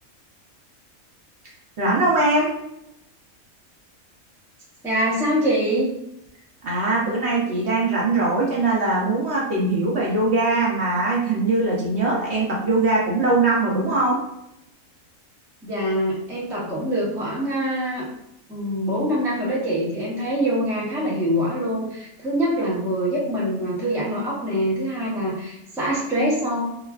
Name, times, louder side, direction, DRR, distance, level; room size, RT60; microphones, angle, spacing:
voice 1, 1.8-2.5 6.6-14.2, right 2 dB, 60° right, -4 dB, 0.8 m, -21 dB
voice 2, 4.8-5.9 15.6-18.1 18.5-26.6, equal, 5° right, -6 dB, 0.4 m, -24 dB
3.1 x 2.2 x 2.2 m, 0.83 s
omnidirectional pair, 1.5 m